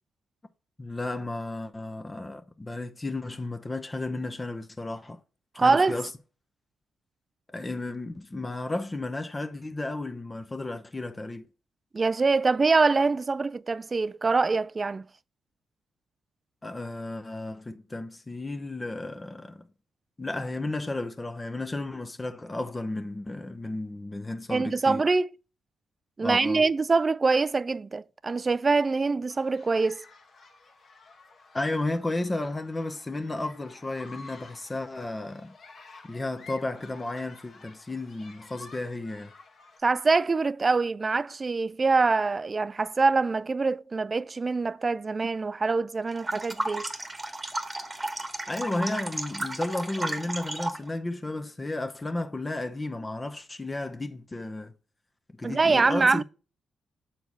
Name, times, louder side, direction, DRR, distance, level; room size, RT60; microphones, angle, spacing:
voice 1, 0.8-5.2 5.6-6.1 7.5-11.5 16.6-19.7 20.2-25.0 26.2-26.6 31.5-35.5 36.0-39.3 48.5-54.7 55.4-56.2, left 2 dB, 25° left, 0.8 m, -33 dB
voice 2, 5.6-6.0 11.9-15.1 24.5-25.3 26.2-30.0 39.8-46.9 55.4-56.2, right 4 dB, 35° right, 0.3 m, -24 dB
sound 1, 29.3-39.8, left 3 dB, 55° left, 1.4 m, -51 dB
sound 2, 46.1-50.9, right 2 dB, 20° right, 1.2 m, -33 dB
7.0 x 4.5 x 4.0 m
hypercardioid pair, 45°, 0 cm